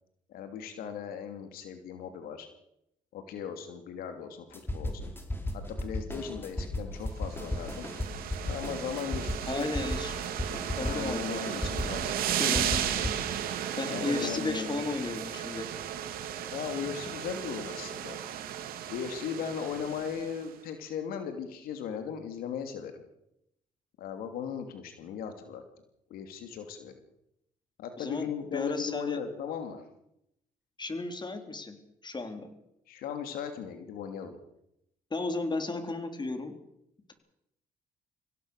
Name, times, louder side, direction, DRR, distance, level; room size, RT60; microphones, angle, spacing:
voice 1, 0.3-2.5 3.1-5.1 5.5-7.9 8.4-9.7 10.8-12.3 13.8-14.8 16.5-18.2 18.9-23.0 24.0-25.6 26.1-26.9 27.8-29.8 32.9-34.4, left 7 dB, 85° left, 7 dB, 2.8 m, -37 dB
sound 1, 4.5-11.2 11.5-13.3, left 1 dB, 15° left, 4.4 m, -35 dB
sound 2, 7.2-20.4, right 10 dB, 80° right, 2.6 m, -35 dB
voice 2, 9.5-10.2 10.8-11.7 12.2-13.1 13.8-15.7 28.0-29.2 30.8-31.8 32.0-32.5 35.1-36.5, left 3 dB, 30° left, 7 dB, 4.2 m, -34 dB
26.0 x 17.0 x 6.7 m, 0.80 s
supercardioid pair, 70°, 15 cm